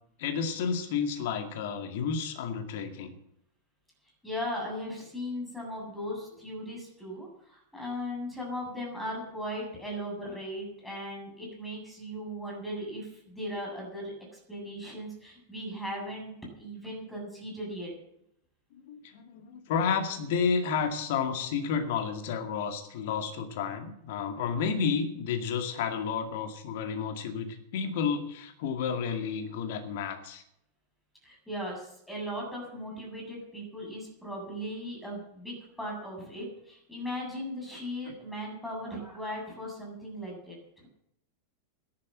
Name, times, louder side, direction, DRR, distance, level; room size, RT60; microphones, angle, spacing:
voice 1, 0.2-3.1 18.7-30.4, left 6 dB, 50° left, 6 dB, 2.2 m, -31 dB
voice 2, 4.2-17.9 31.2-40.9, equal, 5° left, -1 dB, 7.8 m, -38 dB
13.5 x 11.0 x 7.7 m, 0.75 s
figure-of-eight pair, 90°, 0 cm